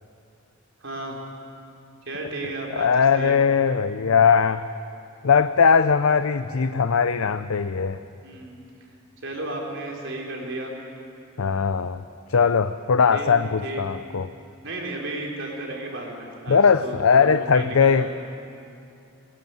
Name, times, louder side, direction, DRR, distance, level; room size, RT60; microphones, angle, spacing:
voice 1, 0.8-1.2 2.0-3.4 8.2-8.6 9.2-10.7 13.1-13.3 13.6-13.8 14.6-18.1, right 2 dB, 60° right, 0 dB, 4.4 m, -34 dB
voice 2, 2.7-4.6 5.2-8.0 11.4-12.0 12.3-14.3 16.5-18.1, left 6 dB, 85° left, 11 dB, 0.6 m, -20 dB
21.0 x 21.0 x 9.4 m, 2.6 s
head